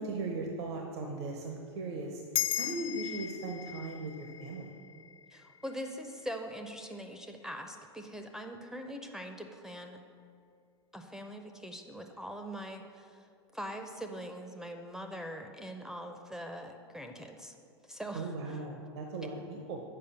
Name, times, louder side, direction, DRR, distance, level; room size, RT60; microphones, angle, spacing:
voice 1, 0.0-2.2 2.6-4.7 18.1-19.8, right 3 dB, 70° right, 2 dB, 0.9 m, -38 dB
sound 1, 2.3-7.1, left 12 dB, 60° left, 0.4 m, -38 dB
voice 2, 5.3-10.0 10.9-13.2 13.5-17.6 17.8-18.6, equal, 5° right, 5 dB, 0.6 m, -42 dB
6.8 x 5.1 x 6.9 m, 2.3 s
hypercardioid pair, 90°, 14 cm